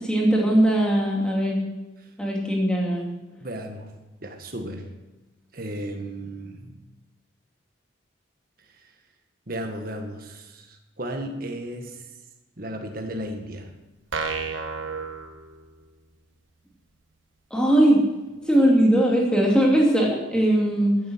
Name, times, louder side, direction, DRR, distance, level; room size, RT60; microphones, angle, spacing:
voice 1, 0.0-1.6 2.2-3.0 17.5-18.0 18.5-21.0, right 1 dB, 5° left, -2 dB, 2.8 m, -20 dB
voice 2, 3.4-3.9 4.2-4.9 5.5-6.8 8.7-8.9 9.5-12.1 12.6-13.7, right 1 dB, 50° right, 4 dB, 1.8 m, -35 dB
sound 1, 14.1-16.0, right 4 dB, 85° right, 1.3 m, -32 dB
14.0 x 9.6 x 6.4 m, 1.1 s
head